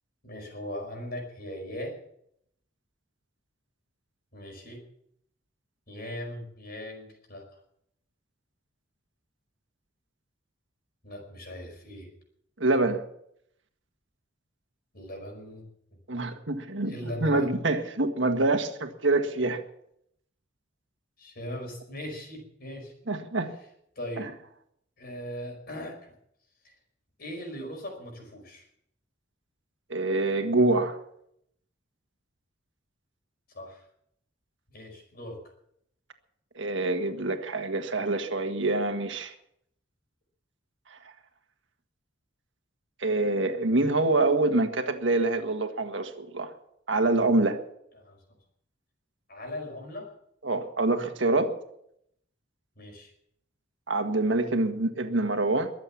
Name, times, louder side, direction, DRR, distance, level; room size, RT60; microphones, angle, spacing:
voice 1, 0.2-2.0 4.3-4.9 5.9-7.4 11.0-12.1 14.9-15.6 16.8-17.5 21.2-22.9 23.9-24.4 25.0-26.1 26.6-26.7 27.2-28.7 33.5-33.8 34.7-35.4 47.9-48.2 49.3-50.1 52.7-53.1, left 1 dB, 50° left, 5.1 m, -39 dB
voice 2, 12.6-13.0 16.1-19.6 23.1-23.5 24.2-24.3 29.9-31.0 36.5-39.3 40.9-41.0 43.0-46.5 46.9-47.6 50.4-51.6 53.9-55.7, right 2 dB, 70° right, 1.7 m, -26 dB
22.5 x 7.8 x 7.2 m
head